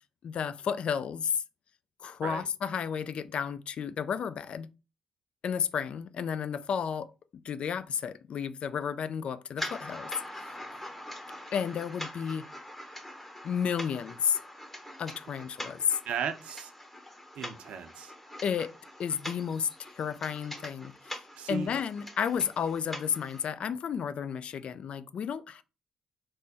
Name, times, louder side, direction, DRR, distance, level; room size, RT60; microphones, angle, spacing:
voice 1, 0.2-1.4 2.0-4.7 5.4-7.1 7.4-10.1 11.5-12.5 13.4-14.4 15.0-16.0 18.4-18.7 19.0-21.2 21.5-25.6, left 7 dB, 60° left, 0.3 m, -32 dB
sound 1, 9.6-23.4, left 1 dB, 15° left, 0.9 m, -43 dB
voice 2, 16.0-16.7 17.4-18.1 21.4-21.7, right 7 dB, 70° right, 0.5 m, -35 dB
3.3 x 2.0 x 4.0 m
hypercardioid pair, 45°, 2 cm